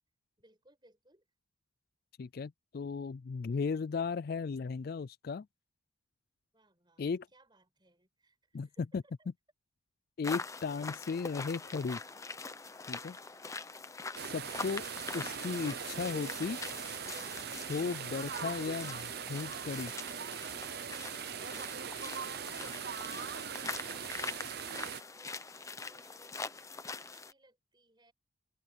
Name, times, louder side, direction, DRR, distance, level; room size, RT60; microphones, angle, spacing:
voice 1, 0.4-1.3 6.5-7.0 7.3-8.8 9.2-9.3 22.0-28.1, right 2 dB, 20° right, 7.0 m, -65 dB
voice 2, 2.2-5.5 7.0-7.3 8.5-8.7 8.9-9.0 10.2-12.0 12.9-13.2 14.2-14.8 15.1-16.6 17.7-19.9, left 5 dB, 50° left, 0.3 m, -36 dB
sound 1, 10.2-27.3, left 4 dB, 15° left, 0.6 m, -44 dB
sound 2, 14.2-25.0, right 7 dB, 50° right, 0.7 m, -41 dB
head